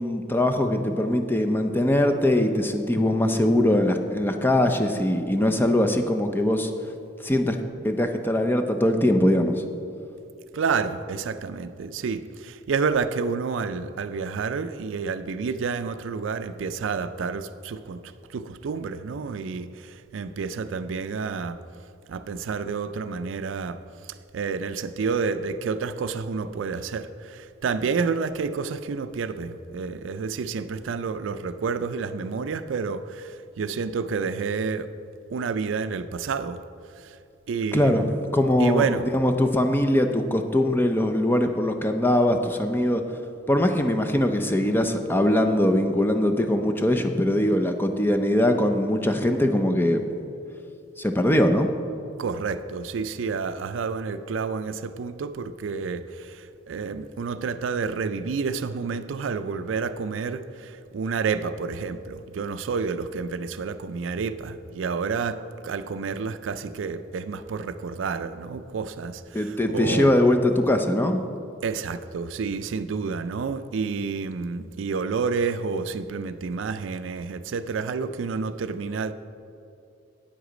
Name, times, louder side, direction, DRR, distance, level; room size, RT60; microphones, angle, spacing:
voice 1, 0.0-6.7 7.2-7.6 7.8-9.7 37.7-38.1 38.3-43.0 43.5-50.0 51.0-51.7 69.3-71.2, left 1 dB, 10° left, 0.5 m, -22 dB
voice 2, 10.5-21.6 22.1-23.8 24.3-34.9 35.3-36.6 37.0-37.2 37.5-38.2 38.6-39.0 52.2-70.1 71.6-79.1, right 5 dB, 80° right, 0.4 m, -29 dB
8.7 x 8.1 x 5.0 m
head